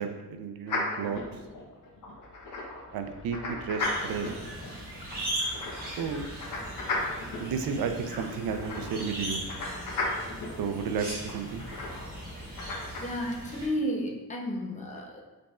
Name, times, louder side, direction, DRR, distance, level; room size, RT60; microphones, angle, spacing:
voice 1, 0.0-1.4 2.9-4.3 6.0-6.2 7.4-9.5 10.6-11.6, right 6 dB, 70° right, 6 dB, 0.5 m, -32 dB
sound 1, 0.7-13.0, left 2 dB, 55° left, 0.9 m, -36 dB
sound 2, 3.8-13.7, right 1 dB, 25° right, 1.4 m, -39 dB
voice 2, 13.0-15.2, equal, 20° left, -1 dB, 0.6 m, -32 dB
5.0 x 4.3 x 2.4 m, 1.1 s
wide cardioid pair, 175°, 38 cm